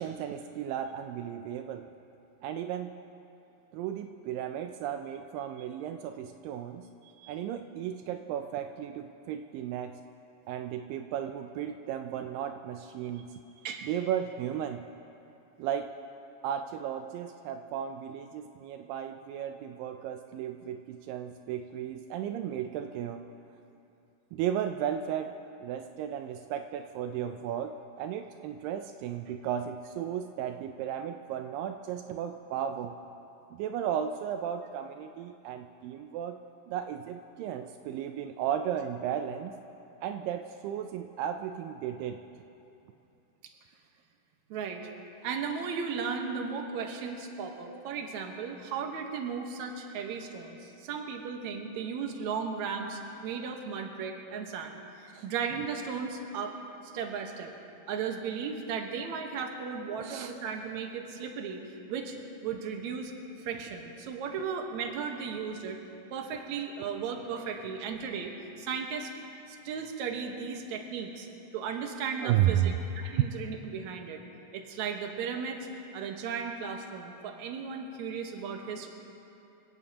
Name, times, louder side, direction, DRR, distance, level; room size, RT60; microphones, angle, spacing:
voice 1, 0.0-1.9 2.4-2.9 3.7-6.9 7.3-9.9 10.5-13.4 13.9-14.8 15.6-15.9 16.4-23.2 24.3-25.3 25.6-27.7 28.0-32.9 33.5-36.4 36.7-39.6 40.0-42.2 55.1-55.3 60.0-60.3 72.2-72.8, right 10 dB, 85° right, 6 dB, 2.3 m, -34 dB
voice 2, 7.0-7.4 13.1-13.2 13.6-13.9 29.3-29.4 44.5-45.0 45.2-56.6 56.9-57.5 57.9-61.6 61.9-62.2 62.4-63.1 63.4-65.8 66.1-68.3 68.6-69.1 69.5-71.3 71.5-74.2 74.5-75.7 75.9-78.9, right 6 dB, 65° right, 3 dB, 2.3 m, -36 dB
26.5 x 16.5 x 2.9 m, 2.8 s
omnidirectional pair, 4.0 m